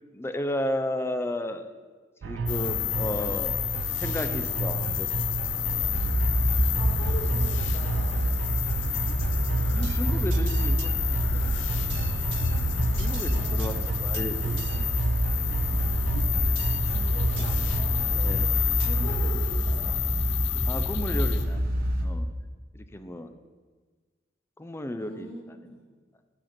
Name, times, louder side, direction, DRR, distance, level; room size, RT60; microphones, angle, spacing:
voice 1, 0.1-1.7 2.2-3.5 4.0-5.2 9.7-11.6 13.0-14.9 18.0-18.5 20.7-21.6 22.0-22.3 22.7-23.3 24.6-25.3, left 1 dB, 15° left, 8 dB, 0.4 m, -33 dB
sound 1, 2.2-19.3, right 5 dB, 80° right, 0.4 m, -33 dB
sound 2, 2.5-21.5, left 9 dB, 85° left, 0.5 m, -31 dB
sound 3, 5.8-22.1, equal, 55° right, 0.9 m, -27 dB
voice 2, 6.8-8.1 13.3-13.8 16.8-18.3 18.7-20.0 25.0-25.8, equal, 35° left, -3 dB, 1.8 m, -42 dB
9.0 x 4.3 x 5.8 m, 1.4 s
head